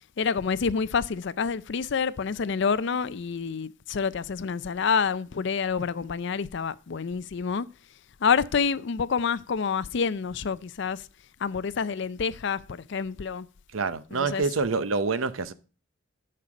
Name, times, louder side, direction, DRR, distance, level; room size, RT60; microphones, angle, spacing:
voice 1, 0.2-7.7 8.2-11.0 11.4-13.5 14.1-14.4, left 6 dB, 60° left, 0.5 m, -28 dB
voice 2, 13.7-15.5, right 4 dB, 80° right, 0.7 m, -27 dB
11.0 x 6.7 x 4.9 m
head